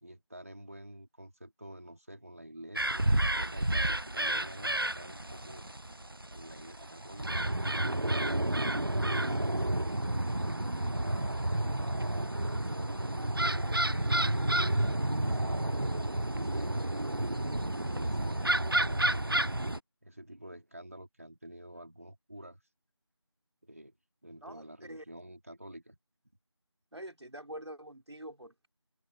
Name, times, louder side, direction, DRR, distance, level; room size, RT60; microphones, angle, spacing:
voice 1, 0.0-5.7 6.3-8.4 9.0-11.7 12.4-15.7 16.1-19.4 20.0-22.6 23.6-23.9 24.2-26.0, right 1 dB, 30° right, 3.1 m, -49 dB
sound 1, 2.8-19.8, right 1 dB, 50° right, 0.5 m, -30 dB
voice 2, 24.4-25.0 26.9-28.7, right 1 dB, 65° right, 4.8 m, -45 dB
figure-of-eight pair, 180°, 15 cm